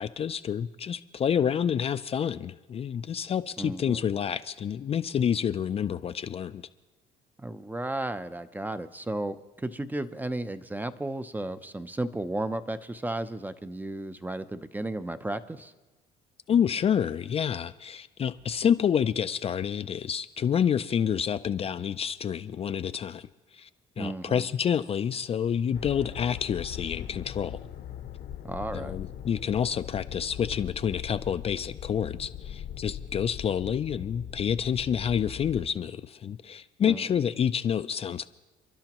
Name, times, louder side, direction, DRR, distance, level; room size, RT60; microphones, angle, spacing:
voice 1, 0.0-6.6 16.5-23.3 23.5-23.7 24.0-27.6 28.7-38.3, left 8 dB, 35° left, 10 dB, 0.4 m, -28 dB
voice 2, 3.6-4.0 7.4-15.7 24.0-24.5 28.4-29.0 36.9-37.2, right 2 dB, 10° right, 11 dB, 0.6 m, -34 dB
sound 1, 25.7-35.6, left 10 dB, 65° left, 0.9 m, -40 dB
29.5 x 11.5 x 3.0 m, 1.2 s
cardioid pair, 110°, 17 cm